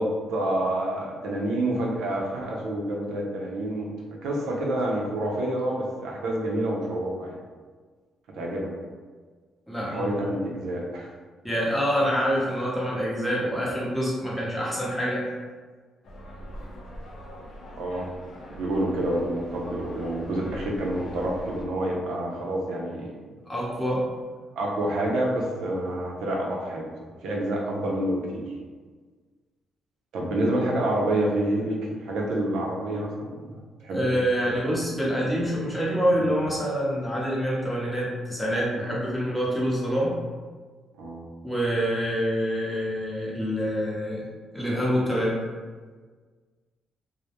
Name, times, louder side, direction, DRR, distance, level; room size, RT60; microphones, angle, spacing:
voice 1, 0.0-3.9 4.2-7.4 8.3-8.7 9.8-11.1 17.8-18.1 18.5-23.1 24.6-26.9 27.2-28.5 30.1-34.0 41.0-41.2, right 1 dB, 80° right, -1 dB, 0.5 m, -28 dB
voice 2, 9.7-10.1 11.4-15.3 23.5-24.1 33.9-40.2 41.4-44.2 44.5-45.4, equal, 5° left, -6 dB, 0.8 m, -26 dB
sound 1, 16.0-21.6, equal, 65° left, 0.4 m, -42 dB
2.1 x 2.0 x 2.9 m, 1.5 s
cardioid pair, 90°, 0 cm